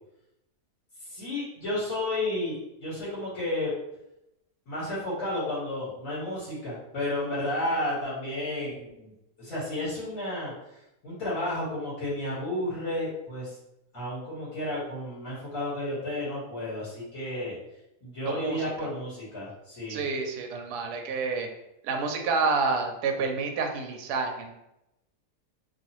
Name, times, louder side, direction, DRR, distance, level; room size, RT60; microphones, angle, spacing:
voice 1, 1.1-3.7 4.7-9.1 9.4-10.5 11.0-13.6 13.9-17.6 18.0-20.0, left 1 dB, 55° left, -9 dB, 1.8 m, -32 dB
voice 2, 18.3-18.6 19.9-21.5 21.8-24.5, right 4 dB, 80° right, 3 dB, 1.1 m, -29 dB
2.8 x 2.7 x 2.9 m, 0.87 s
omnidirectional pair, 1.7 m